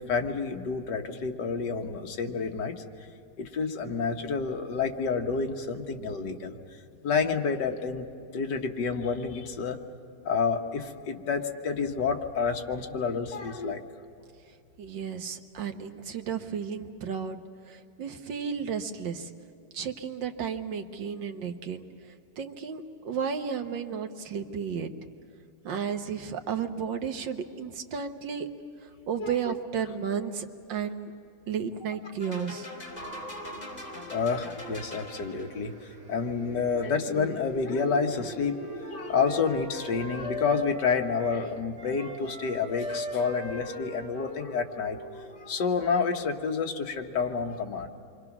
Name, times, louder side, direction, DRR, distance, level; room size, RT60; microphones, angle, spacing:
voice 1, 0.0-2.8 3.4-6.6 7.0-8.1 8.3-9.8 10.3-13.8 29.2-29.5 34.1-35.7 36.1-38.6 38.9-47.9, left 5 dB, 70° left, 4 dB, 1.8 m, -29 dB
voice 2, 14.8-19.3 19.7-24.9 25.6-28.5 28.8-31.1 31.5-32.7, right 7 dB, 90° right, 6 dB, 1.9 m, -33 dB
sound 1, 32.2-35.7, left 1 dB, 20° left, 2.8 m, -42 dB
sound 2, 32.9-39.5, right 1 dB, 70° right, 3.1 m, -43 dB
Wind instrument woodwind instrument, 37.9-41.4 41.7-45.5, left 1 dB, 20° right, 6.3 m, -39 dB
28.0 x 24.0 x 6.0 m, 2.6 s
omnidirectional pair, 1.9 m